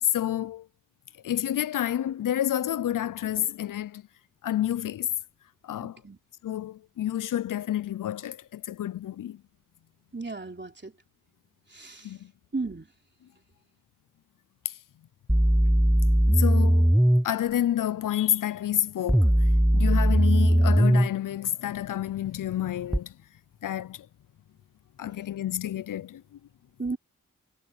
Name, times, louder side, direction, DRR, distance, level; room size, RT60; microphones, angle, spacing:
voice 1, 0.0-0.7 1.2-4.0 4.4-5.1 5.6-6.0 6.4-9.4 12.0-12.3 14.6-14.7 16.3-16.9 17.2-19.4 19.7-23.1 23.6-24.1 25.0-26.4, left 11 dB, 90° left, 0.5 m, -29 dB
voice 2, 5.8-6.2 10.1-10.9 11.7-12.1 12.5-12.9 26.8-27.0, right 3 dB, 35° right, 3.3 m, -34 dB
sound 1, 15.3-17.3 19.1-21.1 22.9-23.0, right 1 dB, ahead, 0.3 m, -19 dB
cardioid pair, 40°, 31 cm